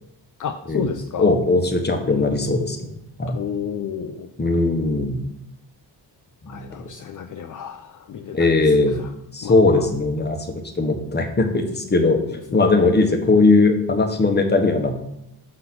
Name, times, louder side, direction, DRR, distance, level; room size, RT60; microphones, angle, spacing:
voice 1, 0.4-1.3 2.1-2.7 3.3-4.3 6.5-9.1 9.4-9.9 12.5-13.0, left 7 dB, 50° left, 6 dB, 0.6 m, -32 dB
voice 2, 1.2-2.9 3.2-3.4 4.4-5.2 6.4-6.8 8.3-9.0 9.3-12.2 12.5-15.0, left 3 dB, 25° left, 5 dB, 1.0 m, -19 dB
6.4 x 4.0 x 5.9 m, 0.84 s
cardioid pair, 100°, 42 cm